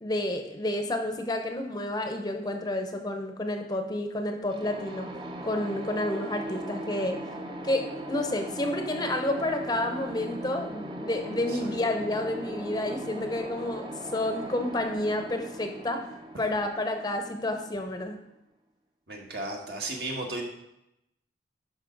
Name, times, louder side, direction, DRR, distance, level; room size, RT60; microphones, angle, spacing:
voice 1, 0.0-5.1 5.4-7.2 7.6-16.1 16.4-18.2, left 1 dB, 20° left, 5 dB, 0.6 m, -30 dB
sound 1, 4.5-18.2, right 1 dB, 25° right, 0.7 m, -39 dB
voice 2, 19.1-20.4, right 2 dB, 55° right, 1 dB, 1.5 m, -35 dB
11.0 x 5.3 x 3.8 m, 0.87 s
head